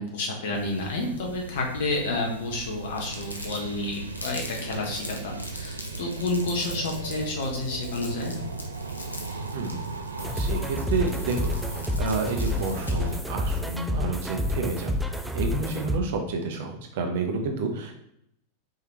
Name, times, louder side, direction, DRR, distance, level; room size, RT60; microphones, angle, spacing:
voice 1, 0.0-8.3, left 2 dB, 55° left, 0 dB, 1.2 m, -30 dB
sound 1, 0.5-13.2, right 3 dB, 75° right, 0.4 m, -37 dB
Crumpling crinkling, 3.0-13.2, left 2 dB, 80° left, 0.7 m, -41 dB
sound 2, 10.2-16.0, left 1 dB, 5° right, 0.4 m, -29 dB
voice 2, 10.3-11.6 12.0-14.9 15.3-17.9, right 4 dB, 55° right, 4 dB, 0.7 m, -29 dB
4.6 x 3.3 x 3.1 m, 0.76 s
figure-of-eight pair, 90°, 0 cm